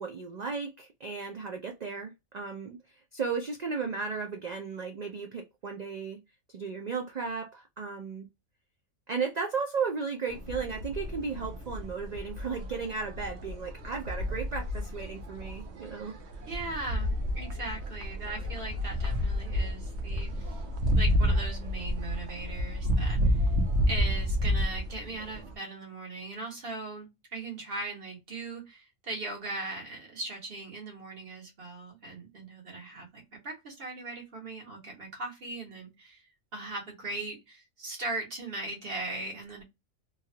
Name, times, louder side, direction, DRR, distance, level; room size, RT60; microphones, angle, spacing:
voice 1, 0.0-2.8 3.1-6.2 6.5-8.3 9.1-16.2, right 5 dB, 85° right, 0.3 m, -35 dB
sound 1, 10.3-25.5, equal, 65° right, 0.9 m, -30 dB
voice 2, 16.5-20.6 20.9-23.4 23.9-36.2 36.5-39.6, right 2 dB, 45° right, 1.5 m, -39 dB
3.1 x 2.3 x 2.7 m
omnidirectional pair, 1.4 m